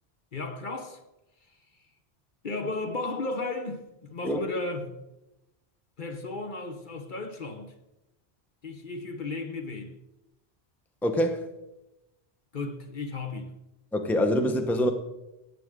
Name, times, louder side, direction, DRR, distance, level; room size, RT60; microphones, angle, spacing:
voice 1, 0.3-1.0 2.4-4.9 6.0-7.7 8.6-10.0 12.5-13.5, left 3 dB, 50° left, 1.1 m, -34 dB
voice 2, 11.0-11.5 13.9-14.9, equal, ahead, 0.7 m, -25 dB
16.5 x 8.0 x 3.7 m
omnidirectional pair, 1.1 m